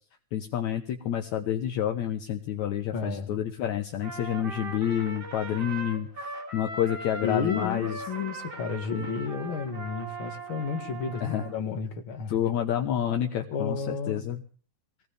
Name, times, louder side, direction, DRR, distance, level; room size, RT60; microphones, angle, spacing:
voice 1, 0.3-8.0 8.9-9.1 11.2-11.4 12.3-14.4, left 10 dB, 70° left, 2.3 m, -29 dB
voice 2, 2.9-3.4 7.2-12.3 13.5-14.3, left 5 dB, 40° left, 2.8 m, -32 dB
Trumpet, 4.0-11.6, right 3 dB, 50° right, 4.2 m, -39 dB
22.5 x 17.0 x 3.5 m
omnidirectional pair, 3.7 m